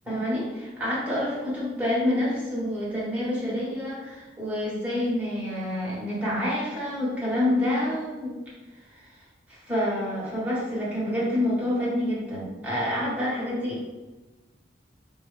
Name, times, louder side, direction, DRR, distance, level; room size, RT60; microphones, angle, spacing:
voice 1, 0.1-8.3 8.9-9.2 9.5-13.8, left 1 dB, 10° right, -8 dB, 1.3 m, -28 dB
4.5 x 2.3 x 3.2 m, 1.2 s
head